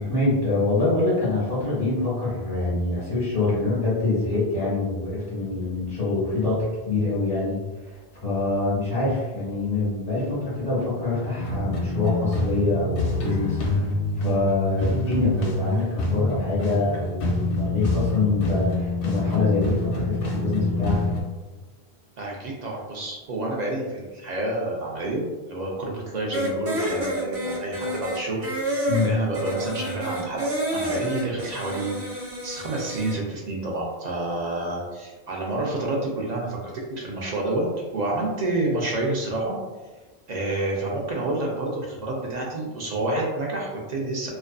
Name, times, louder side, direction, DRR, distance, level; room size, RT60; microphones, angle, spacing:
voice 1, 0.0-7.6 8.2-13.6 14.2-21.0 28.9-29.1, left 2 dB, 40° left, -10 dB, 0.9 m, -25 dB
sound 1, 11.4-21.2, left 2 dB, 70° left, 0.7 m, -26 dB
voice 2, 22.2-30.4 30.7-31.9 32.4-37.7 37.9-39.6 40.3-44.3, right 2 dB, 55° right, -2 dB, 0.5 m, -29 dB
sound 2, 26.3-33.1, equal, 90° right, 0.9 m, -29 dB
2.4 x 2.4 x 2.2 m, 1.3 s
omnidirectional pair, 1.1 m